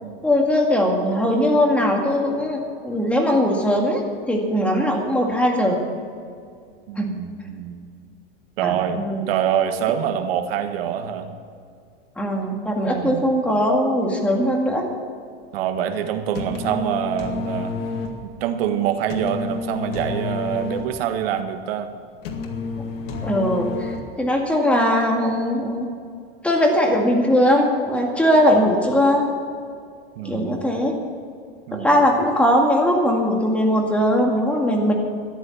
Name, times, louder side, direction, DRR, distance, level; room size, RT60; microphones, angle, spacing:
voice 1, 0.2-5.8 7.0-7.1 8.6-9.2 12.2-14.8 23.2-23.9 24.2-25.9 26.4-29.3 30.2-31.0 31.7-34.9, equal, 5° left, 0 dB, 2.0 m, -20 dB
voice 2, 6.9-7.8 8.6-11.3 12.9-13.2 15.5-17.7 18.2-21.9 30.1-30.6 31.7-32.0, right 9 dB, 70° right, 7 dB, 1.6 m, -25 dB
sound 1, 16.1-24.4, left 4 dB, 70° left, 2.1 m, -30 dB
13.5 x 10.5 x 7.2 m, 2.3 s
supercardioid pair, 150°, 30 cm